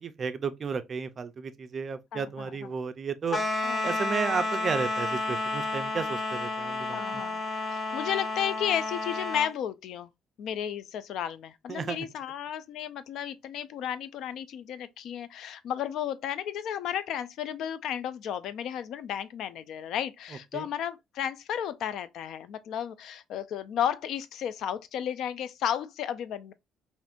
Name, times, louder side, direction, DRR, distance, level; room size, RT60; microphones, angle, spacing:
voice 1, 0.0-3.4 3.8-7.2 11.7-12.1 20.5-20.7, right 5 dB, 35° right, 0.4 m, -33 dB
voice 2, 2.1-2.7 3.6-4.0 6.9-7.4 7.7-10.1 10.4-26.5, left 9 dB, 70° left, 0.3 m, -33 dB
sound 1, 3.3-9.5, left 2 dB, 25° left, 0.6 m, -31 dB
3.5 x 2.5 x 2.4 m
cardioid pair, 135°, 0 cm